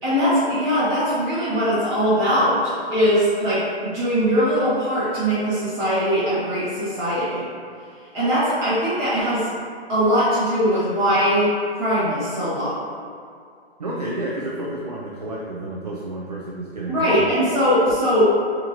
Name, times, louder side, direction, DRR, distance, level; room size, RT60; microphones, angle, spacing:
voice 1, 0.0-7.5 8.1-9.5 9.9-11.5 11.8-12.8 16.9-18.3, equal, 10° right, -13 dB, 0.9 m, -21 dB
voice 2, 13.8-17.3, right 1 dB, 40° right, -4 dB, 0.4 m, -30 dB
6.8 x 2.9 x 2.5 m, 2.3 s
hypercardioid pair, 175°, 33 cm